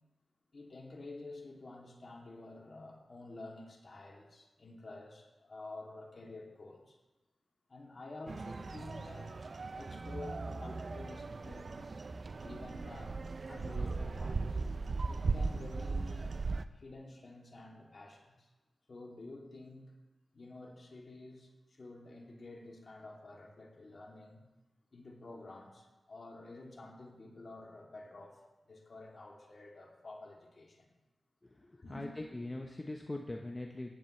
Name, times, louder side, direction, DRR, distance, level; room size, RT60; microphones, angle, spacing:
voice 1, 0.5-7.0 7.7-9.3 9.8-13.2 13.5-14.6 15.1-16.3 16.7-18.5 18.9-19.9 20.3-24.4 24.9-30.9 31.8-32.1, left 2 dB, 55° left, -1 dB, 2.9 m, -50 dB
sound 1, 8.3-16.6, right 3 dB, 55° right, 0.5 m, -38 dB
voice 2, 31.4-33.9, left 2 dB, 25° left, 2 dB, 1.1 m, -42 dB
15.5 x 10.5 x 3.4 m, 1.1 s
cardioid pair, 40°, 0 cm